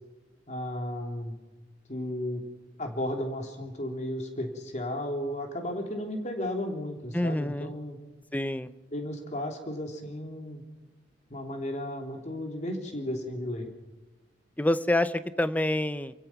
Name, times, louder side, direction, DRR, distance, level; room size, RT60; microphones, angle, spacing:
voice 1, 0.5-1.4 1.9-2.4 2.8-8.0 8.9-10.6 11.3-13.7, left 1 dB, 40° left, 4 dB, 3.2 m, -34 dB
voice 2, 7.1-7.7 8.3-8.7 14.6-16.1, left 1 dB, 10° left, 14 dB, 0.6 m, -27 dB
28.5 x 16.0 x 6.0 m, 1.2 s
head